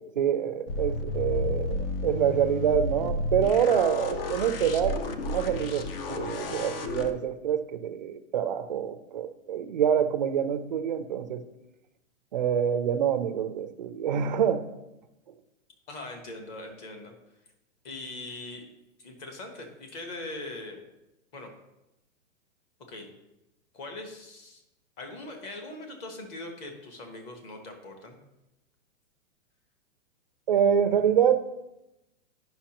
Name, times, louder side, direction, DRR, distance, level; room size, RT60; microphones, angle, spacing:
voice 1, 0.2-11.4 12.3-14.6 30.5-31.5, right 8 dB, 40° right, 9 dB, 0.4 m, -26 dB
sound 1, 0.7-7.1, left 2 dB, 45° left, 0.7 m, -32 dB
voice 2, 15.9-17.1 17.8-18.6 19.0-20.8 21.3-21.5 22.9-23.1 23.7-24.6 25.0-28.2, left 2 dB, 25° left, 4 dB, 1.1 m, -41 dB
10.0 x 5.7 x 2.9 m, 0.92 s
hypercardioid pair, 155°, 39 cm